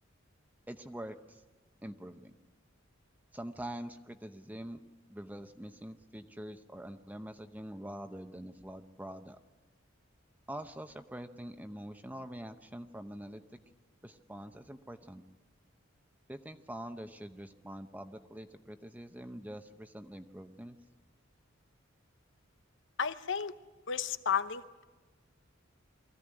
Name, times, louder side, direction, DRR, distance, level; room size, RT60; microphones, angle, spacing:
voice 1, 0.7-1.4 1.8-2.3 3.3-4.8 5.1-9.4 10.5-13.4 14.0-15.2 16.3-20.8, right 1 dB, 10° right, 7 dB, 0.8 m, -45 dB
voice 2, 23.0-23.5 23.9-24.8, left 7 dB, 65° left, 12 dB, 0.9 m, -33 dB
23.5 x 15.5 x 9.9 m, 1.3 s
head